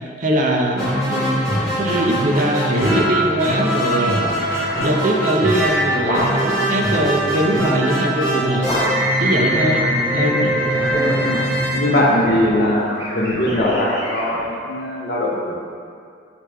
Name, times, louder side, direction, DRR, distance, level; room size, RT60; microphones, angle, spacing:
voice 1, 0.2-1.4 1.8-4.2 4.8-8.7 9.2-10.5, right 1 dB, 45° right, 1 dB, 0.4 m, -21 dB
sound 1, 0.7-12.6, equal, 15° right, 1.4 m, -22 dB
sound 2, 1.9-2.1 2.7-3.2 3.8-5.0 5.5-6.6 7.3-8.6 9.2-9.9 10.7-14.4, equal, 85° right, 1.2 m, -33 dB
sound 3, 5.9-6.7 8.6-9.3 10.6-11.4 12.2-14.2, equal, 30° left, 0.7 m, -26 dB
voice 2, 10.2-10.6 11.1-15.5, left 1 dB, 65° left, -3 dB, 0.7 m, -21 dB
5.0 x 3.2 x 3.3 m, 2.2 s
head